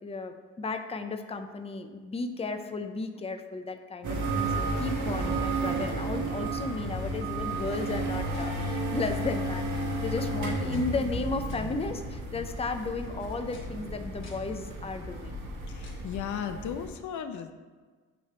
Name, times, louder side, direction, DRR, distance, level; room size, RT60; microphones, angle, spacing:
voice 1, 0.0-15.3, left 3 dB, 20° left, 7 dB, 0.6 m, -34 dB
sound 1, 4.0-16.9, right 2 dB, 75° right, 1.6 m, -33 dB
sound 2, 7.3-16.2, left 3 dB, 40° left, 2.4 m, -43 dB
voice 2, 15.7-17.5, left 8 dB, 75° left, 7 dB, 0.7 m, -36 dB
8.8 x 3.2 x 6.6 m, 1.4 s
cardioid pair, 90°, 30 cm